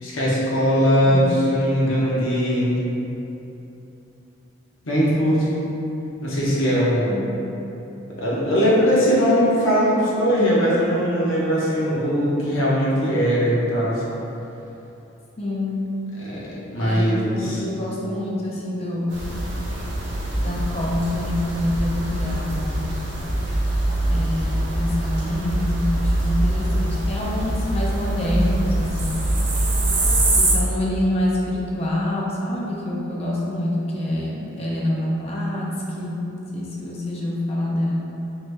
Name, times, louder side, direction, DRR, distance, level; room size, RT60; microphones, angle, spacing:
voice 1, 0.0-2.7 4.8-5.5 6.2-7.2 8.2-14.0 16.2-17.6, equal, 80° left, -7 dB, 0.8 m, -20 dB
voice 2, 1.0-1.4 7.1-7.3 15.4-15.8 16.8-19.3 20.4-22.9 24.0-29.3 30.3-38.0, left 1 dB, 30° left, -4 dB, 0.4 m, -26 dB
sound 1, 19.1-30.5, right 1 dB, 55° right, 0.6 m, -23 dB
3.1 x 2.6 x 3.2 m, 3.0 s
head